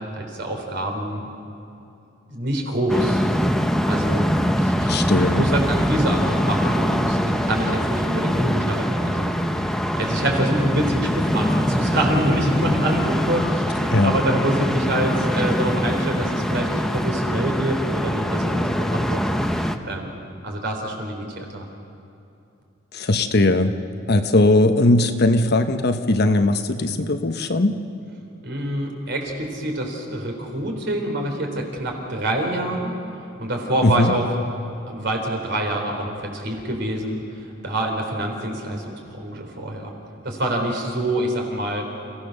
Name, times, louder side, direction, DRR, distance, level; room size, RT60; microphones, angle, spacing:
voice 1, 0.1-1.3 2.3-3.2 3.9-4.3 4.6-4.9 5.3-19.2 19.5-21.7 28.4-32.9 33.4-34.3 34.9-37.2 37.6-39.9 40.2-41.8, right 1 dB, 60° right, 2 dB, 4.0 m, -26 dB
sound 1, 2.9-19.8, equal, ahead, 0.9 m, -23 dB
voice 2, 4.9-5.5 13.9-14.1 22.9-23.7 24.1-27.8 33.8-34.1, left 2 dB, 55° left, 8 dB, 1.1 m, -19 dB
29.5 x 16.5 x 6.6 m, 2.7 s
head